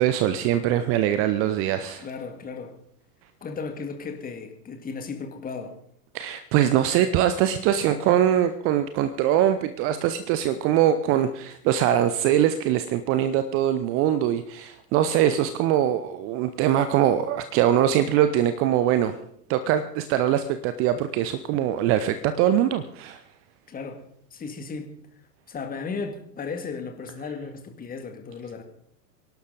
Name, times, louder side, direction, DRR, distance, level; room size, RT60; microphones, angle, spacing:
voice 1, 0.0-2.1 6.1-19.2 19.5-23.2, right 11 dB, 30° right, 11 dB, 0.7 m, -22 dB
voice 2, 2.0-2.8 3.4-5.8 23.7-24.0 24.3-24.9 25.5-28.6, left 4 dB, 20° left, 5 dB, 2.0 m, -35 dB
24.0 x 11.5 x 3.9 m, 0.68 s
figure-of-eight pair, 95°, 48 cm